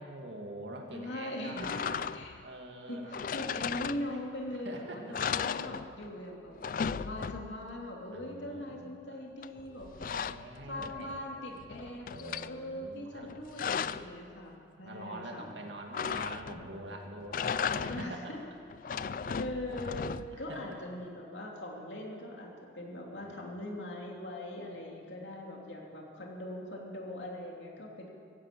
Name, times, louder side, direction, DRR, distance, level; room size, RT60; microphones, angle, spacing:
voice 1, 0.0-2.1 2.4-3.3 4.1-4.2 4.5-5.2 8.1-9.2 10.0-11.1 12.1-13.3 14.8-18.2 18.9-19.4 20.3-20.8 23.2-23.3 25.2-25.4, right 1 dB, 85° right, 2 dB, 2.2 m, -45 dB
voice 2, 0.9-1.6 2.1-2.4 2.9-6.5 6.8-9.9 10.7-15.5 17.9-18.4 19.4-28.1, left 1 dB, 90° left, -1 dB, 2.8 m, -41 dB
sound 1, 1.6-2.4 3.1-4.4 4.7-4.8 5.1-6.2 6.5-7.7 9.4-11.2 11.6-12.5 13.2-14.2 15.9-16.7 17.2-18.2 18.7-20.5, left 7 dB, 50° left, 0.3 m, -36 dB
15.0 x 11.0 x 8.4 m, 2.3 s
head